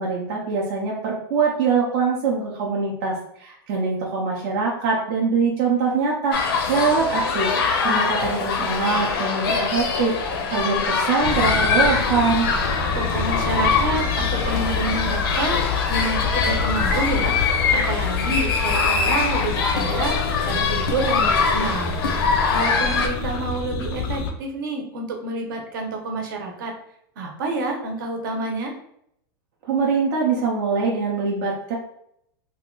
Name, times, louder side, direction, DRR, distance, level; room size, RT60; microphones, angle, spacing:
voice 1, 0.0-7.5 7.8-12.5 29.6-31.7, right 4 dB, 30° right, -3 dB, 0.5 m, -23 dB
sound 1, 6.3-23.1, left 5 dB, 65° left, 0.7 m, -23 dB
sound 2, 11.2-24.3, left 5 dB, 25° left, 0.3 m, -27 dB
voice 2, 12.9-17.4 17.7-21.9 22.5-26.7 27.2-28.7, right 2 dB, 55° right, 2 dB, 0.8 m, -28 dB
2.8 x 2.3 x 3.7 m, 0.72 s
supercardioid pair, 175°, 13 cm